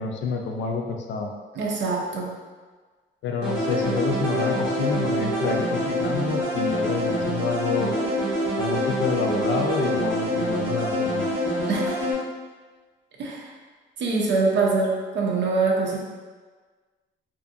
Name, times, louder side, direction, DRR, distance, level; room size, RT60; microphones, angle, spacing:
voice 1, 0.0-1.3 3.2-8.0 8.6-11.3, left 4 dB, 70° left, 2 dB, 0.4 m, -28 dB
voice 2, 1.6-2.3 11.7-12.0 13.2-13.5 14.0-16.0, right 3 dB, 65° right, -1 dB, 0.6 m, -24 dB
sound 1, 3.4-12.1, equal, 90° right, 1.1 m, -26 dB
2.6 x 2.6 x 2.5 m, 1.4 s
cardioid pair, 90°, 20 cm